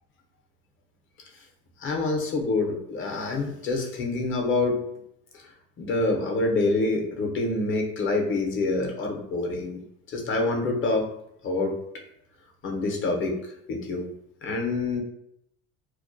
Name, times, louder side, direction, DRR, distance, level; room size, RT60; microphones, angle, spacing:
voice 1, 1.8-4.8 5.8-9.8 10.1-11.1 11.4-11.8 12.6-13.4 13.7-14.1 14.4-15.0, left 3 dB, 40° left, 2 dB, 0.6 m, -26 dB
2.3 x 2.1 x 2.5 m, 0.75 s
supercardioid pair, 95°, 32 cm